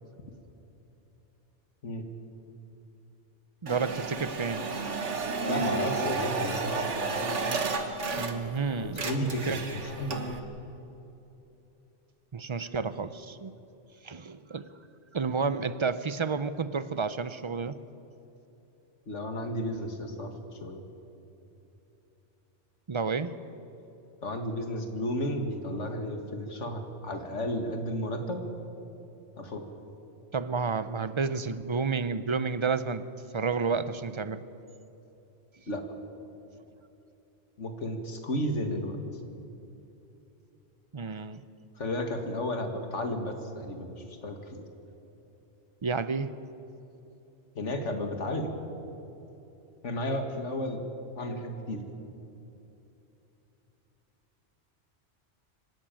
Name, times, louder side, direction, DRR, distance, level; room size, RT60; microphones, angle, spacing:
voice 1, 3.6-4.7 8.2-9.6 12.3-13.5 14.0-14.7 15.1-17.8 22.9-23.3 30.3-33.0 33.3-34.4 40.9-41.4 45.8-46.3, right 5 dB, 30° right, 14 dB, 0.6 m, -30 dB
sound 1, 3.7-8.6 8.9-10.4, right 4 dB, 80° right, 1.7 m, -32 dB
voice 2, 5.5-6.8 8.8-10.2 19.1-20.3 20.6-20.8 24.2-28.5 29.4-29.6 35.7-35.8 37.6-39.0 41.8-44.0 44.2-44.6 47.6-48.5 49.8-50.8 51.2-51.9, left 1 dB, 80° left, 5 dB, 2.2 m, -33 dB
25.5 x 12.5 x 9.0 m, 3.0 s
omnidirectional pair, 1.2 m